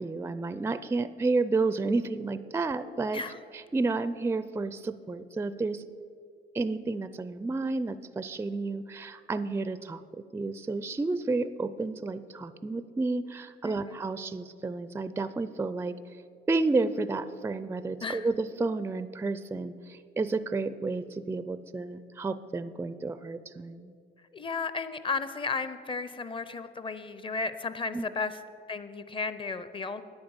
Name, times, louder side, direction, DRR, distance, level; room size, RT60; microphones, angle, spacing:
voice 1, 0.0-3.2 3.7-5.8 6.5-10.0 10.3-15.9 16.5-23.9 27.9-28.1, right 3 dB, 10° right, 14 dB, 0.4 m, -31 dB
voice 2, 13.6-14.0 18.0-18.3 24.2-28.4 28.7-30.0, left 4 dB, 25° left, 13 dB, 0.7 m, -34 dB
9.7 x 8.8 x 7.1 m, 2.3 s
cardioid pair, 90°, 20 cm